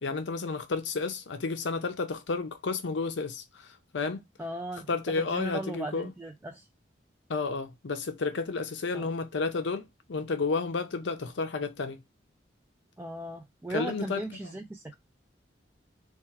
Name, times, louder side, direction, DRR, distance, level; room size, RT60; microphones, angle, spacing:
voice 1, 0.0-4.2 4.9-6.1 7.3-12.0 13.7-14.2, left 4 dB, 75° left, 0.6 m, -31 dB
voice 2, 4.4-6.7 8.9-9.1 13.0-14.9, right 1 dB, 10° right, 0.3 m, -37 dB
4.3 x 2.4 x 4.4 m
head